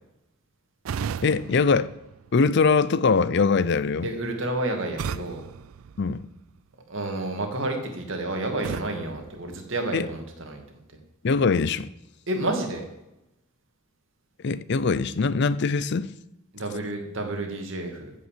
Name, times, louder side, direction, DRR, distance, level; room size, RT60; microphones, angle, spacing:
sound 1, 0.8-2.8 5.0-6.7 8.6-10.2, right 7 dB, 90° right, 0.4 m, -37 dB
voice 1, 1.2-1.9 2.3-4.1 6.0-6.3 9.9-10.1 11.2-11.9 14.4-16.1, left 4 dB, 55° left, 0.5 m, -22 dB
voice 2, 4.0-5.4 6.9-10.6 12.3-12.8 16.5-18.1, right 2 dB, 65° right, 2.3 m, -30 dB
14.5 x 5.6 x 7.5 m
head